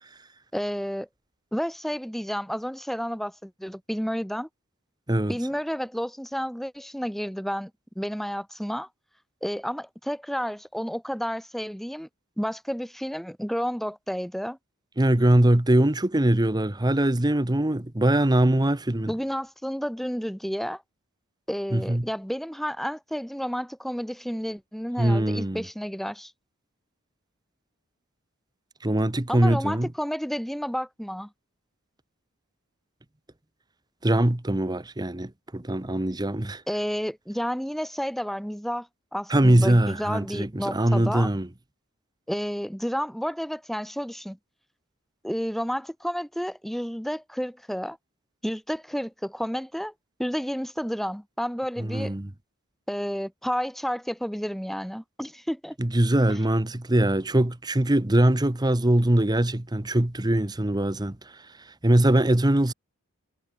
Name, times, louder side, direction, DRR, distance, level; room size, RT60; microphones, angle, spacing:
voice 1, 0.5-1.1 1.5-4.5 5.3-7.7 8.0-8.9 9.4-12.1 12.4-14.6 19.1-20.8 21.5-26.3 29.3-31.3 36.7-41.3 42.3-44.4 45.2-48.0 48.4-49.9 50.2-52.1 52.9-55.8, equal, ahead, 2.2 m, -31 dB
voice 2, 15.0-19.1 21.7-22.1 25.0-25.6 28.8-29.9 34.0-36.6 39.3-41.5 51.8-52.3 55.8-61.2 61.8-62.7, right 1 dB, 20° right, 1.0 m, -22 dB
head